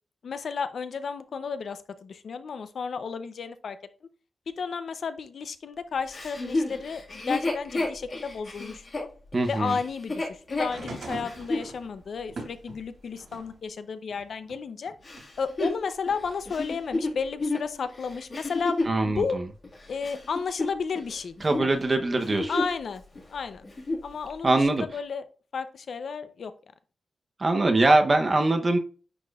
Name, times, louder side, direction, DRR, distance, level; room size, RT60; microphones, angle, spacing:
voice 1, 0.2-3.8 4.5-9.1 9.5-14.9 15.4-19.4 19.9-21.7 22.5-23.0 23.3-23.7 24.0-25.2 25.5-26.5, left 5 dB, 60° left, 0.6 m, -33 dB
Chuckle chortle, 6.1-11.7 12.3-12.4 15.0-19.0 19.6-21.1 21.4-21.7 22.1-22.8 23.1-23.2 23.6-24.1 24.8-24.9, left 2 dB, 35° left, 1.8 m, -31 dB
voice 2, 9.3-9.8 18.9-19.4 21.4-22.5 24.4-24.8 27.4-28.8, right 2 dB, 25° right, 0.8 m, -22 dB
sound 1, 10.5-13.6 14.1-15.2 16.2-16.3, right 2 dB, 65° right, 3.3 m, -42 dB
9.8 x 4.3 x 2.4 m
wide cardioid pair, 170°, 0 cm